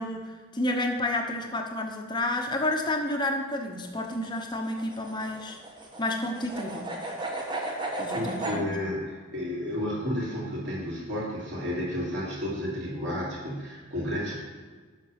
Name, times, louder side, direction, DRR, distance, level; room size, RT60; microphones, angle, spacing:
voice 1, 0.0-5.6 6.0-6.9 8.0-8.7, left 1 dB, 20° left, 3 dB, 0.8 m, -30 dB
sound 1, 3.8-8.6, right 2 dB, 20° right, 1.0 m, -35 dB
voice 2, 8.1-14.4, left 1 dB, 55° right, -5 dB, 2.8 m, -32 dB
7.6 x 5.9 x 5.8 m, 1.5 s
head